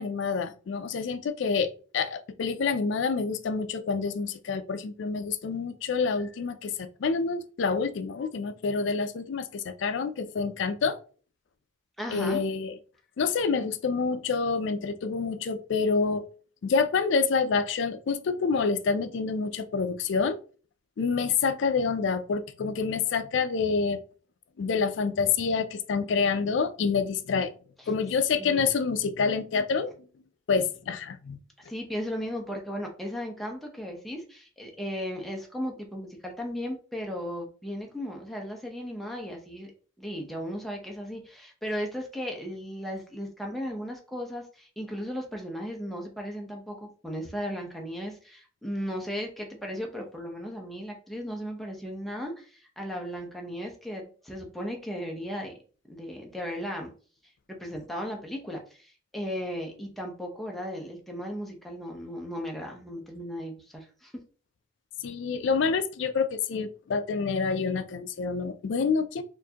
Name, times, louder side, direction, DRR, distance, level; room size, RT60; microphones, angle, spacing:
voice 1, 0.0-11.0 12.1-12.8 13.2-16.3 16.6-20.4 21.0-24.0 24.6-27.5 27.9-29.9 30.5-31.4 65.0-69.2, left 5 dB, 70° left, 0.4 m, -27 dB
voice 2, 12.0-12.4 28.4-28.7 31.6-39.7 40.0-55.5 55.9-56.9 57.5-64.2, equal, ahead, 0.8 m, -36 dB
4.4 x 2.6 x 2.8 m
head